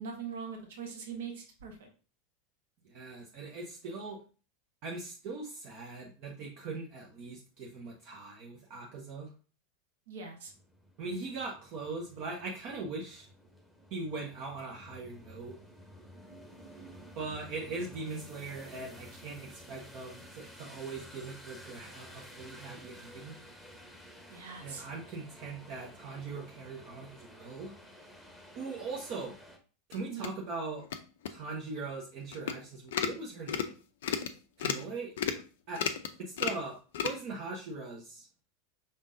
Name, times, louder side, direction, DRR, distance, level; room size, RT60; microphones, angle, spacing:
voice 1, 0.0-1.9 10.1-10.5 24.3-24.9 30.1-30.3, right 6 dB, 60° right, 3 dB, 1.2 m, -42 dB
voice 2, 2.9-4.2 4.8-9.3 11.0-13.3 13.9-15.6 17.2-23.4 24.6-27.7 28.6-29.3 29.9-30.8 31.3-33.7 34.6-35.1 35.7-35.8 36.2-36.8 37.0-38.3, right 3 dB, 45° right, -1 dB, 0.9 m, -40 dB
sound 1, 10.5-29.6, equal, 5° left, 1.0 m, -52 dB
sound 2, 29.9-30.3 30.8-31.0 31.3-31.4 31.8-31.9 32.3-32.6 32.9-33.2 33.5-33.7 34.0-34.3 34.6-34.8 35.2-35.4 35.7-36.1 36.4-36.6 36.9-37.1, left 8 dB, 60° left, 0.4 m, -32 dB
5.4 x 3.6 x 2.6 m, 0.36 s
figure-of-eight pair, 85°, 0 cm